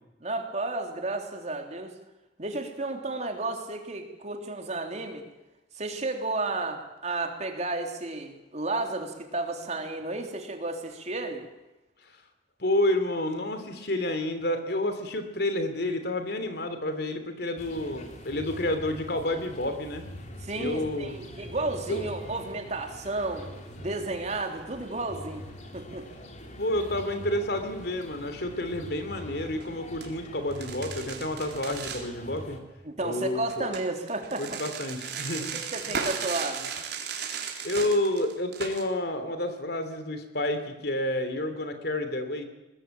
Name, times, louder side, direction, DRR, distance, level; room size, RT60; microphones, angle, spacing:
voice 1, 0.2-1.9 2.4-5.2 5.7-11.4 20.4-23.5 23.8-25.4 25.7-26.1 32.8-34.4 35.5-36.7, right 2 dB, 40° right, 3 dB, 3.5 m, -32 dB
voice 2, 12.6-20.1 20.6-21.1 21.9-22.1 26.6-32.6 33.0-33.7 34.4-35.5 35.9-36.0 37.6-42.5, left 1 dB, 60° left, 8 dB, 3.1 m, -29 dB
sound 1, 17.6-32.6, left 1 dB, 40° left, 3.3 m, -44 dB
sound 2, 29.5-29.7 30.0-30.1 30.5-32.1 33.5-38.8, right 6 dB, 60° right, 3.9 m, -35 dB
21.5 x 20.0 x 9.1 m, 1.0 s
head